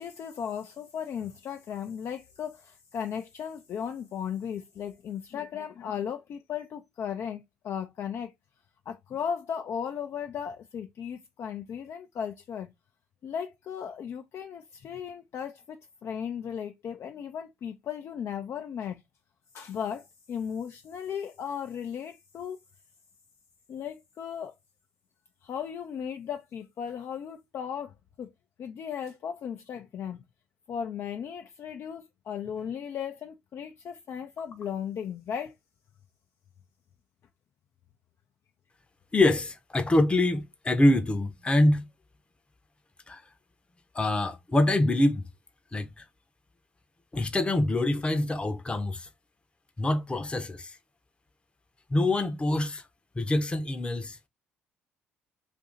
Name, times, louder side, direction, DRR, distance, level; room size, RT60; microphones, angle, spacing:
voice 1, 0.0-8.3 8.9-12.7 13.2-19.0 19.5-22.6 23.7-24.5 25.4-28.3 28.6-30.2 30.7-35.5, left 8 dB, 55° left, 0.4 m, -36 dB
voice 2, 39.1-41.8 43.1-43.2 43.9-45.3 45.7-46.0 47.1-49.1 49.8-50.8 51.9-52.8 53.2-54.3, left 1 dB, 20° left, 0.7 m, -25 dB
2.7 x 2.6 x 3.6 m
hypercardioid pair, 60°, 5 cm